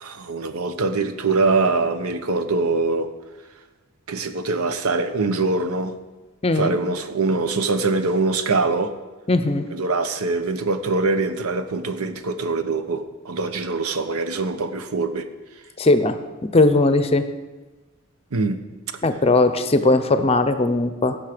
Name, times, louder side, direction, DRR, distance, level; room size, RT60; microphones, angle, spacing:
voice 1, 0.0-3.1 4.1-6.0 6.6-8.9 9.7-15.3 18.3-18.6, right 3 dB, 85° right, 10 dB, 0.8 m, -23 dB
voice 2, 6.4-6.8 9.3-9.6 15.8-16.2 16.5-17.2 19.0-21.2, left 2 dB, 25° left, 10 dB, 0.6 m, -18 dB
16.5 x 6.3 x 5.0 m, 1.2 s
head